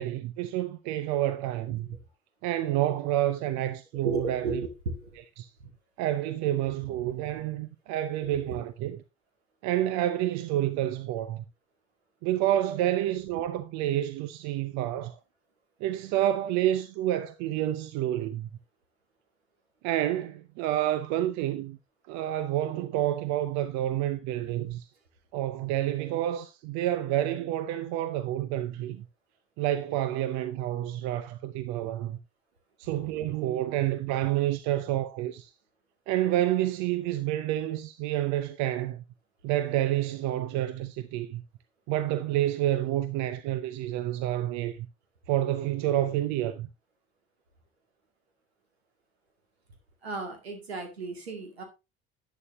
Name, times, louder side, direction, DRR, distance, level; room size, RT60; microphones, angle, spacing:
voice 1, 0.0-1.9 2.4-4.7 5.4-5.5 6.0-9.0 9.6-11.4 12.2-15.2 15.8-18.5 19.8-21.8 22.1-24.9 25.3-29.0 29.6-32.2 32.8-35.5 36.1-39.0 39.4-41.4 41.9-44.9 45.3-46.7, right 13 dB, 65° right, 0.8 m, -29 dB
voice 2, 4.0-5.2 8.2-8.4 50.0-51.6, right 3 dB, 90° right, 2.2 m, -34 dB
11.0 x 9.2 x 3.0 m
hypercardioid pair, 60°, 31 cm